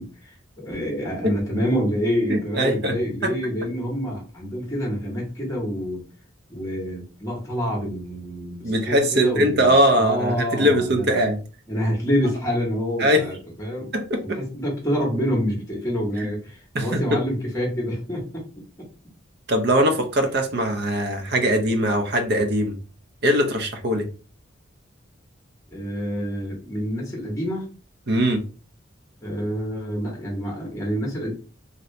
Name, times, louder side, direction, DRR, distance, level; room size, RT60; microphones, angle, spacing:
voice 1, 0.0-6.0 6.5-11.2 11.7-13.9 14.2-18.9 25.7-27.6 29.2-31.3, equal, 15° left, 1.2 m, -27 dB
voice 2, 2.3-2.9 3.2-3.3 8.6-11.4 13.0-13.3 13.9-14.4 16.2-16.3 16.7-17.2 19.5-22.8 23.2-24.1 28.1-28.4, equal, 55° right, 0.6 m, -21 dB
2.7 x 2.7 x 3.2 m
head